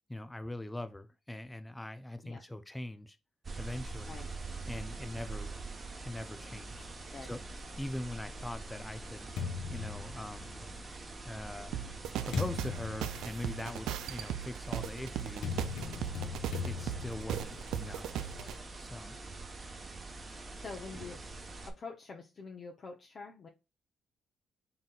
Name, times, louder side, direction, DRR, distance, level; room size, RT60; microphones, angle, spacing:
voice 1, 0.1-3.2 3.6-4.1 4.7-5.5 6.0-6.9 7.3-7.4 7.8-9.3 9.7-10.7 11.2-11.8 12.2-15.6 16.6-18.4 18.8-19.2, left 1 dB, 10° left, 0.4 m, -41 dB
sound 1, 3.4-21.7, right 3 dB, 30° right, 0.9 m, -45 dB
sound 2, 8.3-10.8 11.6-18.6, left 6 dB, 85° left, 1.0 m, -42 dB
sound 3, 11.7-18.6, right 10 dB, 85° right, 0.4 m, -38 dB
voice 2, 20.5-21.2 21.7-23.5, left 4 dB, 45° left, 0.8 m, -46 dB
4.0 x 3.9 x 2.4 m
cardioid pair, 90°, 0 cm